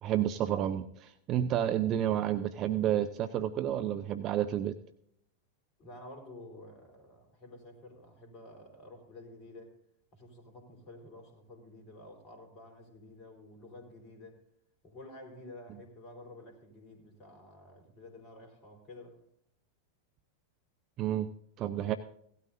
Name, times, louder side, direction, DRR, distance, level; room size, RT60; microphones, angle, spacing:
voice 1, 0.0-4.7 21.0-21.3 21.6-22.0, right 11 dB, 35° right, 0.6 m, -30 dB
voice 2, 5.8-9.8 10.1-14.4 14.8-19.2, left 1 dB, 30° left, 3.9 m, -51 dB
17.0 x 12.5 x 2.6 m
figure-of-eight pair, 90°, 0 cm